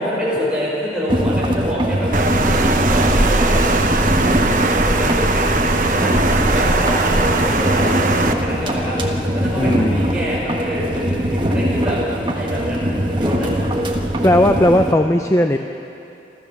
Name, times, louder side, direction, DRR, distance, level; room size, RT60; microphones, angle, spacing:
voice 1, 0.0-9.0 9.3-12.0 12.2-13.5, equal, 5° right, -7 dB, 6.5 m, -26 dB
sound 1, 1.1-14.9, equal, 25° right, 1.5 m, -21 dB
Water, 2.1-8.3, right 2 dB, 50° right, 1.1 m, -19 dB
voice 2, 9.6-10.0 14.2-15.6, left 1 dB, 15° left, 6 dB, 0.5 m, -16 dB
28.5 x 13.5 x 7.2 m, 2.8 s
head